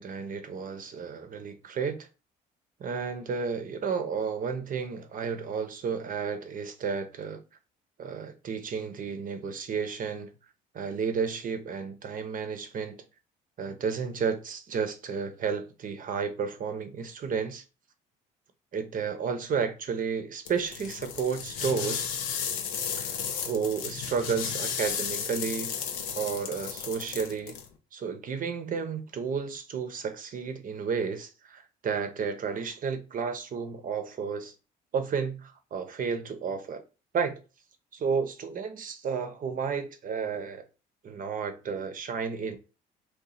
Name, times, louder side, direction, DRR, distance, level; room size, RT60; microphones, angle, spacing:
voice 1, 0.0-2.1 2.8-7.4 8.0-10.3 10.7-13.0 13.6-17.6 18.7-22.1 23.0-25.7 26.2-27.6 27.9-34.5 34.9-36.8 37.1-37.4 37.9-40.6 41.0-42.6, right 6 dB, 45° right, 0.7 m, -32 dB
sound 1, 20.5-27.7, left 7 dB, 80° left, 0.7 m, -34 dB
2.8 x 2.3 x 3.9 m
supercardioid pair, 70°, 19 cm